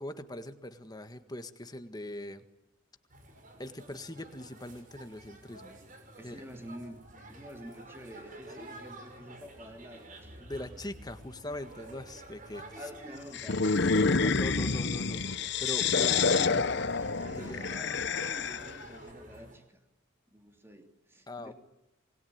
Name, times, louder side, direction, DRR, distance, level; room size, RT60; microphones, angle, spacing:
voice 1, 0.0-2.4 3.6-5.8 6.2-6.4 10.4-12.8 14.0-15.2 15.6-16.2 17.4-17.6 21.3-21.5, left 1 dB, 20° left, 9 dB, 1.7 m, -41 dB
sound 1, 3.1-19.6, right 1 dB, 40° right, 6.3 m, -50 dB
voice 2, 6.1-7.0 7.3-10.8 12.8-13.9 16.1-16.7 17.2-19.8 20.3-21.5, equal, 10° right, 5 dB, 3.1 m, -48 dB
sound 2, 13.3-18.8, left 4 dB, 55° left, 1.0 m, -28 dB
27.5 x 21.0 x 8.9 m, 0.95 s
head